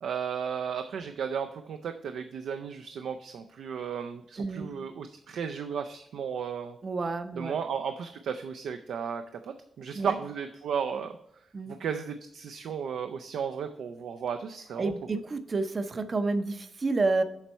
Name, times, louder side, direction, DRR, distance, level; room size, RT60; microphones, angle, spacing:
voice 1, 0.0-6.8 7.4-11.1 11.7-14.9, right 7 dB, 80° right, 7 dB, 0.4 m, -34 dB
voice 2, 4.4-4.7 6.8-7.6 9.9-10.2 11.5-11.7 14.8-17.2, right 3 dB, 35° right, 10 dB, 0.5 m, -29 dB
7.2 x 4.5 x 5.3 m, 0.80 s
wide cardioid pair, 140°, 0 cm